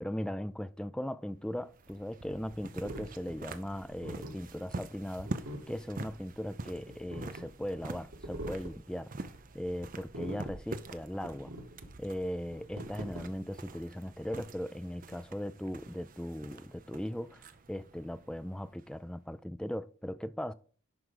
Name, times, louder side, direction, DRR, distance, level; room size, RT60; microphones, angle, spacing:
voice 1, 0.0-9.3 9.5-11.5 12.0-20.5, equal, 5° left, 0.3 m, -38 dB
sound 1, 1.4-19.1, right 2 dB, 40° right, 0.6 m, -46 dB
sound 2, 2.8-13.8, right 1 dB, 80° right, 2.3 m, -45 dB
11.0 x 4.6 x 3.9 m
head